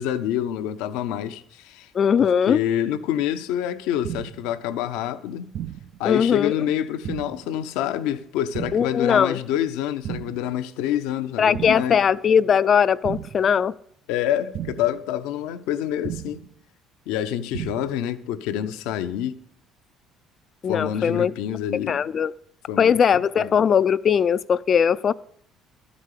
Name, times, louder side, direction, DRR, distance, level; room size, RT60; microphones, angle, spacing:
voice 1, 0.0-1.9 2.2-5.5 6.0-12.0 14.1-16.4 17.1-19.4 20.7-22.0 22.7-23.0 23.4-23.5, left 10 dB, 85° left, 0.6 m, -27 dB
voice 2, 1.9-2.6 6.0-6.7 8.7-9.4 11.4-13.7 20.6-21.3 21.9-22.3 22.8-25.1, left 7 dB, 45° left, 0.4 m, -20 dB
sound 1, 4.0-4.5 5.5-6.0 7.0-7.5 8.5-9.0 10.0-10.5 11.5-12.0 13.0-13.5 14.5-15.0 16.0-16.5 17.5-18.0, right 11 dB, 65° right, 0.4 m, -34 dB
12.0 x 5.0 x 8.3 m
supercardioid pair, 80°, 0 cm